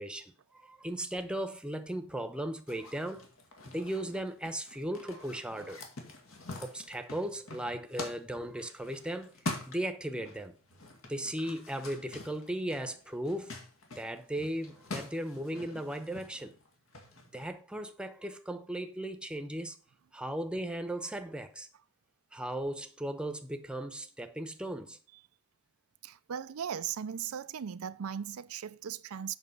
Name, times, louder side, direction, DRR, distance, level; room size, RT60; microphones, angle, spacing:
voice 1, 0.0-3.3 3.7-5.8 6.6-10.5 11.0-13.5 14.0-16.5 17.3-19.8 20.1-21.7 22.3-25.0, right 1 dB, 5° right, 0.8 m, -37 dB
sound 1, 2.7-10.4 10.6-17.5, left 2 dB, 75° left, 2.0 m, -45 dB
voice 2, 26.0-29.4, right 8 dB, 85° right, 0.5 m, -38 dB
8.0 x 6.0 x 5.4 m
head